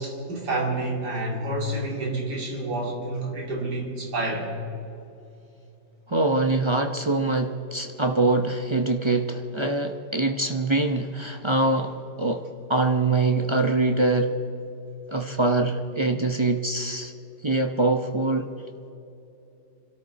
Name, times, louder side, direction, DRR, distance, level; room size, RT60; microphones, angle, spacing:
voice 1, 0.0-4.5, right 2 dB, 75° right, 0 dB, 3.3 m, -29 dB
voice 2, 6.1-14.3 15.1-17.1 17.4-18.5, right 2 dB, 30° right, 5 dB, 0.5 m, -24 dB
26.0 x 13.0 x 4.2 m, 2.9 s
omnidirectional pair, 1.8 m